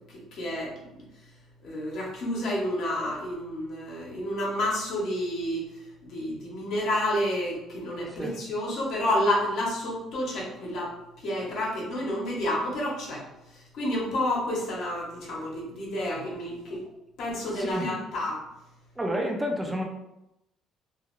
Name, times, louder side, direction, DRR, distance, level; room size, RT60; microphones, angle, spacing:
voice 1, 0.1-1.0 1.6-5.6 6.0-10.9 11.2-13.2 13.5-16.8 17.2-18.4, left 1 dB, 70° left, -4 dB, 0.9 m, -30 dB
voice 2, 17.5-17.9 19.0-19.8, equal, 10° right, 1 dB, 0.5 m, -30 dB
2.4 x 2.3 x 3.0 m, 0.88 s
cardioid pair, 110°, 0 cm